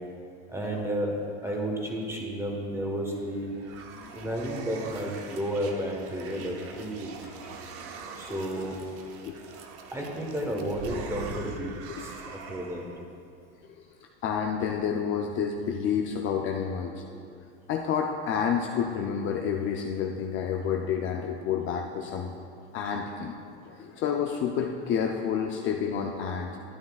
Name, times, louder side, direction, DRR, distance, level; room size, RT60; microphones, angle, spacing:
voice 1, 0.5-1.1 1.4-3.5 4.1-7.2 8.2-8.8 9.9-12.8, equal, 10° right, 0 dB, 1.3 m, -32 dB
sound 1, 3.1-13.1, right 4 dB, 40° right, 0.9 m, -43 dB
voice 2, 3.9-4.3 7.2-7.5 8.3-8.4 9.2-9.4 11.9-12.3 14.2-17.0 17.7-22.3 22.7-23.4 23.6-26.6, left 7 dB, 35° left, 2 dB, 0.6 m, -29 dB
12.5 x 9.1 x 2.4 m, 2.4 s
supercardioid pair, 125°, 34 cm